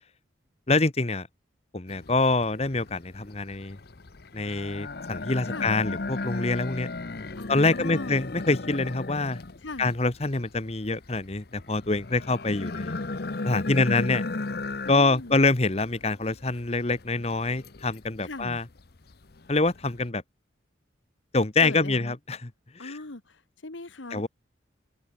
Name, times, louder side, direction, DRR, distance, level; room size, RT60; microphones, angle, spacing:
voice 1, 0.7-1.3 1.7-3.8 4.3-6.9 7.5-9.4 9.8-13.0 13.4-14.2 14.9-18.6 19.5-20.2 21.3-22.5 22.7-23.0 24.1-24.3, left 3 dB, 35° left, 1.1 m, -25 dB
sound 1, 1.9-20.1, left 3 dB, 55° left, 0.9 m, -36 dB
voice 2, 7.4-8.2 9.6-9.9 13.7-14.0 14.8-15.4 18.2-18.6 21.6-22.2 22.8-24.2, left 2 dB, 85° left, 1.7 m, -39 dB
head